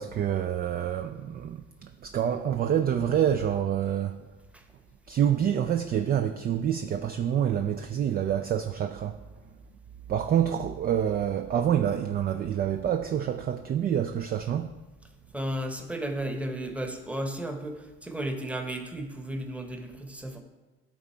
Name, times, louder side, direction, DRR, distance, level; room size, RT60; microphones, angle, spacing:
voice 1, 0.0-4.2 5.1-9.2 10.1-14.7, right 9 dB, 30° right, 0.4 m, -27 dB
voice 2, 15.3-20.4, right 1 dB, 5° right, 1.0 m, -34 dB
10.5 x 4.0 x 4.4 m
supercardioid pair, 85°, 32 cm